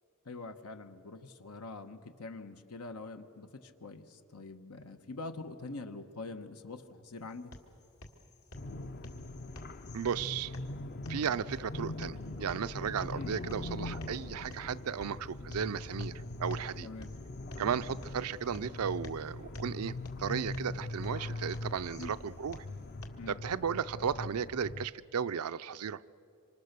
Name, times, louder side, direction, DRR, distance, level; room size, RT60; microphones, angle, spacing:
voice 1, 0.2-7.5 13.1-13.3 16.8-17.1 17.5-17.7 22.0-22.2 23.2-23.4, left 3 dB, 90° left, 8 dB, 1.2 m, -44 dB
sound 1, 7.1-23.1, left 1 dB, 75° left, 2.1 m, -53 dB
sound 2, 8.5-24.9, left 2 dB, 45° left, 0.6 m, -41 dB
voice 2, 9.9-10.5 11.1-16.1 16.4-16.9 17.6-19.9 20.2-22.6 23.3-26.0, right 7 dB, 75° right, 15 dB, 0.5 m, -35 dB
26.0 x 26.0 x 6.8 m, 2.8 s
head